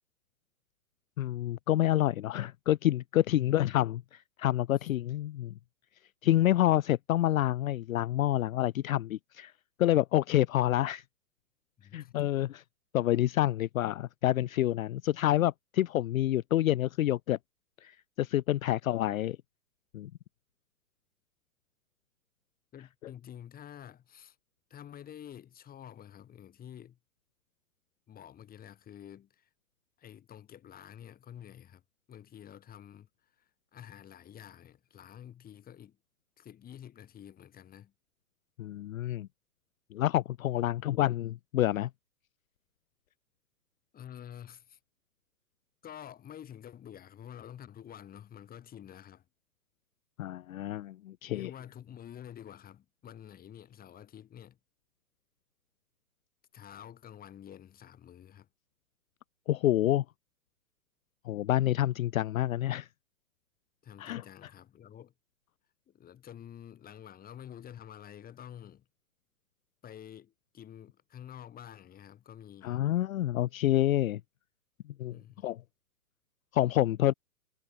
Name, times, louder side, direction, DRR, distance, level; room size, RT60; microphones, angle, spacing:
voice 1, 1.2-5.5 6.2-9.5 9.8-11.0 11.9-12.6 12.9-17.4 17.8-19.4 19.9-20.1 38.6-39.3 39.9-41.9 50.2-51.5 59.5-60.0 61.3-62.9 64.0-64.2 72.6-74.2 75.0-75.2 75.4-75.6 76.5-77.1, left 13 dB, 70° left, 0.5 m, -28 dB
voice 2, 3.3-3.8 11.8-12.1 18.6-18.7 22.7-24.4 24.7-27.0 28.1-29.5 30.0-31.8 32.1-36.0 36.4-37.9 40.6-41.0 43.9-44.8 45.8-49.2 51.3-54.6 56.5-58.5 63.8-65.1 65.9-68.9 69.8-72.8 75.1-75.5, left 10 dB, 20° left, 6.7 m, -49 dB
figure-of-eight pair, 120°, 44 cm